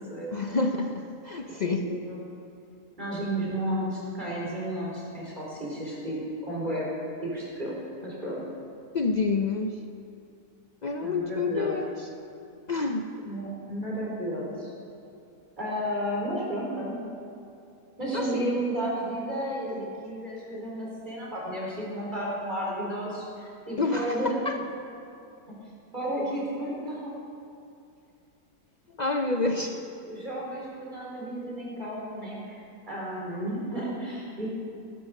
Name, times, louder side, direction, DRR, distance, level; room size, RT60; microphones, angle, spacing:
voice 1, 0.3-1.9 8.9-9.8 10.8-12.1 12.7-13.3 18.1-18.4 23.8-24.2 24.5-24.6 28.9-29.8, left 3 dB, 70° left, 4 dB, 0.4 m, -28 dB
voice 2, 1.8-2.2 3.0-6.2 6.4-6.9 7.2-7.8 8.0-8.4 11.0-11.7 13.2-14.7 15.6-17.0 18.0-24.4 25.9-27.1 30.1-34.5, right 1 dB, 30° right, -4 dB, 4.6 m, -32 dB
16.0 x 12.5 x 6.5 m, 2.6 s
omnidirectional pair, 1.7 m